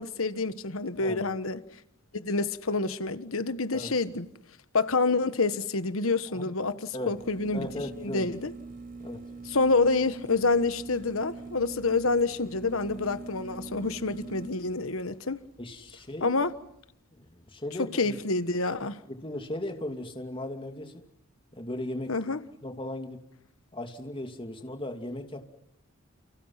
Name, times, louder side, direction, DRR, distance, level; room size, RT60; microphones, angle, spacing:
voice 1, 0.0-1.6 2.1-4.2 4.7-7.7 8.0-8.5 9.5-15.4 16.2-16.5 17.9-19.0 22.1-22.4, left 3 dB, 75° left, 1.4 m, -27 dB
sound 1, 7.1-16.9, right 3 dB, 45° right, 4.4 m, -44 dB
voice 2, 7.5-8.3 9.0-9.2 15.6-16.4 17.1-18.2 19.1-21.1 21.5-22.1 22.6-23.2 23.7-25.4, left 1 dB, 25° left, 2.6 m, -37 dB
30.0 x 29.0 x 5.8 m
head